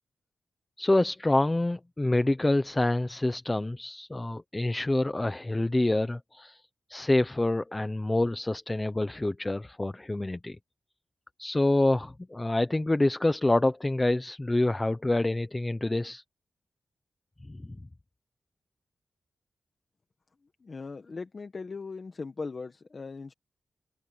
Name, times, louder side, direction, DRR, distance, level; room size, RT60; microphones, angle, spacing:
voice 1, 0.8-6.6 6.9-10.6 11.4-16.2 17.5-17.6, left 2 dB, 15° left, 0.8 m, -27 dB
voice 2, 20.6-23.3, left 4 dB, 40° left, 1.3 m, -39 dB
open air
wide cardioid pair, 140°, 0 cm